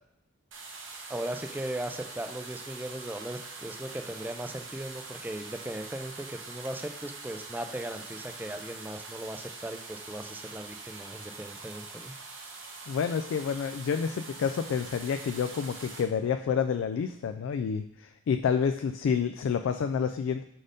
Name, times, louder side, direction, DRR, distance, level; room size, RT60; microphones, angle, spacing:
sound 1, 0.5-16.0, right 3 dB, 75° right, 1.1 m, -44 dB
voice 1, 1.1-12.1, right 1 dB, 10° right, 6 dB, 0.4 m, -38 dB
voice 2, 12.9-20.4, left 6 dB, 75° left, 8 dB, 0.3 m, -29 dB
5.1 x 4.3 x 5.0 m, 0.79 s
head